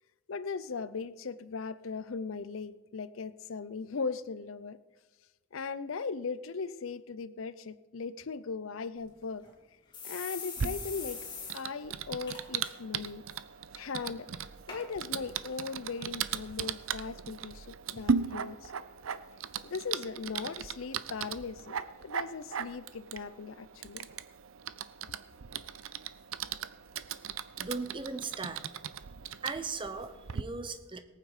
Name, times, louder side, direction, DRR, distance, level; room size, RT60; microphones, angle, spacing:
voice 1, 0.3-4.8 5.5-9.4 10.0-11.2 11.5-13.2 13.7-14.3 14.7-18.7 19.6-21.8 22.0-24.1, left 5 dB, 85° left, 16 dB, 0.6 m, -38 dB
sound 1, 9.0-9.1 9.4-9.5 9.9-11.5 11.9-12.0 12.3-12.7 13.0-13.4 14.0-14.1 14.7-14.8 15.5-15.6, left 5 dB, 25° left, 2.8 m, -42 dB
Typing, 10.6-30.4, right 6 dB, 85° right, 0.6 m, -38 dB
voice 2, 27.6-28.6 29.4-31.0, right 4 dB, 25° right, 10 dB, 0.8 m, -38 dB
18.5 x 9.0 x 5.0 m, 1.2 s
head